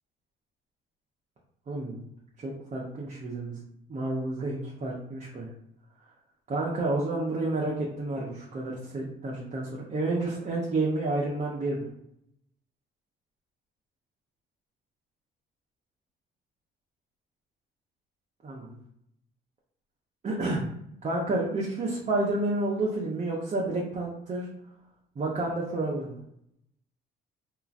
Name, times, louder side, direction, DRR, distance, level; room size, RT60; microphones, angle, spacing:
voice 1, 1.7-2.0 2.4-3.6 3.9-5.5 6.5-11.9 18.4-18.8 20.2-20.7 21.0-24.5 25.2-26.2, right 2 dB, 35° right, -4 dB, 0.7 m, -30 dB
2.8 x 2.4 x 2.4 m, 0.75 s
cardioid pair, 90°, 20 cm